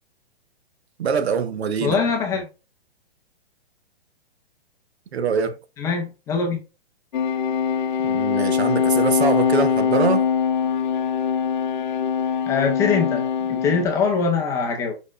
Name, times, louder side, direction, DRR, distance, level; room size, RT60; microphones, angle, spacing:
voice 1, 1.0-2.0 5.1-5.6 8.0-10.3, right 6 dB, 85° right, 1.0 m, -23 dB
voice 2, 1.8-2.5 5.8-6.6 12.5-14.9, left 5 dB, 10° left, 0.5 m, -23 dB
sound 1, 7.1-13.8, left 7 dB, 50° left, 0.7 m, -22 dB
5.1 x 4.3 x 2.3 m
hypercardioid pair, 155°, 31 cm